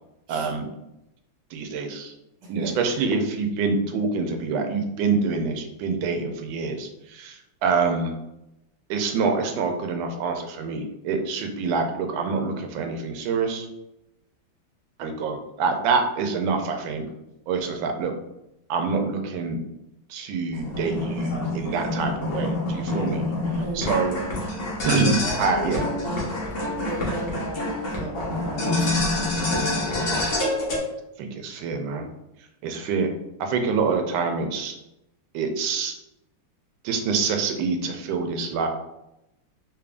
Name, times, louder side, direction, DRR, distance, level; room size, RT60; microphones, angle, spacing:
voice 1, 0.3-0.6 1.5-2.1 2.5-8.1 8.9-13.7 15.0-17.0 17.5-18.1 18.7-19.6 20.1-23.3 23.7-24.3 24.8-25.8 29.8-29.9 31.2-32.1 32.6-33.1 33.4-34.7 35.3-35.9 36.8-38.7, right 4 dB, 75° right, 5 dB, 1.3 m, -26 dB
voice 2, 2.4-2.8 23.6-23.9 25.0-26.3 26.8-28.9, right 1 dB, 55° right, -4 dB, 1.4 m, -35 dB
sound 1, 20.5-30.8, left 2 dB, 45° left, 0.7 m, -27 dB
3.4 x 3.4 x 2.4 m, 0.88 s
omnidirectional pair, 2.2 m